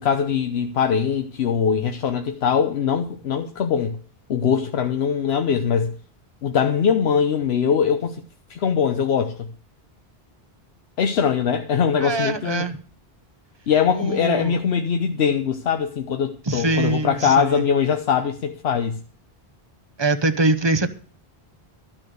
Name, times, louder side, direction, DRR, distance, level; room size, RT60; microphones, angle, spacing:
voice 1, 0.0-4.0 4.3-5.9 6.4-8.2 8.5-9.5 11.0-12.7 13.7-19.0, left 7 dB, 80° left, 1.0 m, -22 dB
voice 2, 12.0-12.8 13.9-14.6 16.5-17.6 20.0-20.9, right 2 dB, 30° right, 0.7 m, -23 dB
12.5 x 6.0 x 7.8 m
omnidirectional pair, 1.0 m